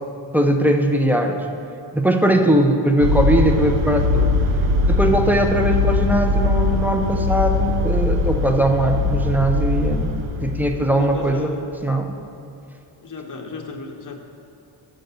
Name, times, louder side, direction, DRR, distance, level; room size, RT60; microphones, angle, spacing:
voice 1, 0.3-1.5 1.9-4.3 4.9-11.5 11.8-12.2, right 1 dB, 5° right, 4 dB, 0.3 m, -20 dB
sound 1, 3.0-11.3, left 2 dB, 80° right, 0.6 m, -21 dB
voice 2, 5.1-5.5 10.9-11.6 13.0-14.2, left 3 dB, 45° left, 4 dB, 0.7 m, -34 dB
6.4 x 5.0 x 6.7 m, 2.7 s
wide cardioid pair, 175°, 46 cm